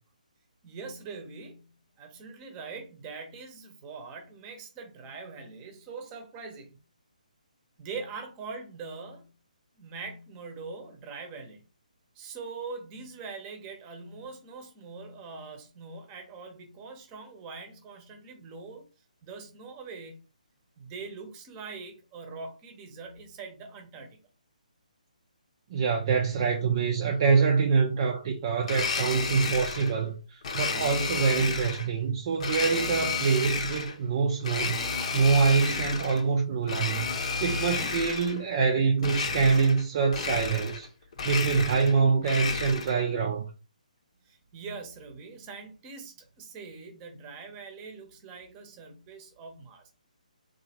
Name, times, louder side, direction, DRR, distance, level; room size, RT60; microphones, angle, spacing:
voice 1, 0.6-6.7 7.8-9.3 9.8-11.6 12.1-18.8 19.2-20.1 20.8-24.2 44.2-49.9, right 4 dB, 20° right, 0.9 m, -42 dB
voice 2, 25.7-37.1 37.4-40.9 41.2-43.5, right 5 dB, 40° right, 0.5 m, -25 dB
Domestic sounds home sounds, 28.6-29.9 30.4-31.9 32.4-34.0 34.4-36.2 36.6-38.4 39.0-39.8 40.1-40.9 41.1-43.0, left 5 dB, 50° left, 0.8 m, -31 dB
3.8 x 2.7 x 3.0 m
figure-of-eight pair, 140°, 4 cm